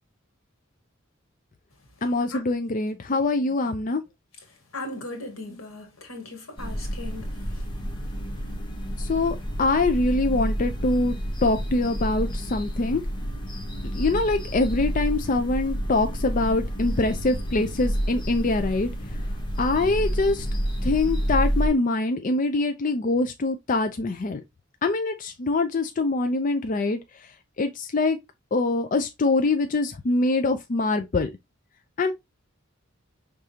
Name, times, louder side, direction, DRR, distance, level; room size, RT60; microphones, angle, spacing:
voice 1, 2.0-4.0 9.0-13.0 13.8-19.2 19.6-20.5 20.8-24.4 24.8-27.3 27.6-28.2 28.5-31.3 32.0-32.1, left 2 dB, 40° left, 0.4 m, -24 dB
voice 2, 4.7-7.7, left 2 dB, 90° left, 1.7 m, -38 dB
sound 1, 6.6-21.7, equal, 25° left, 1.1 m, -29 dB
5.0 x 3.6 x 2.7 m
head